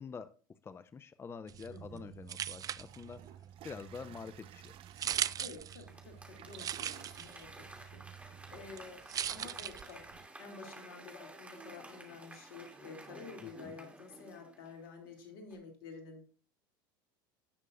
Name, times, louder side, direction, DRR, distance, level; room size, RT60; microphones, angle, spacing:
voice 1, 0.0-4.8 13.4-13.7, left 5 dB, 20° left, 13 dB, 0.6 m, -47 dB
sound 1, 1.5-10.3, right 10 dB, 30° right, 0.4 m, -41 dB
voice 2, 1.7-2.1 5.4-16.2, left 4 dB, 75° left, 3 dB, 2.9 m, -50 dB
Toilet flush, 2.3-2.4 2.8-13.6, right 11 dB, 50° right, 1.0 m, -59 dB
Applause / Crowd, 5.7-15.1 15.5-15.6, right 2 dB, 10° right, 2.8 m, -53 dB
17.5 x 6.4 x 2.6 m, 0.38 s
hypercardioid pair, 90°, 12 cm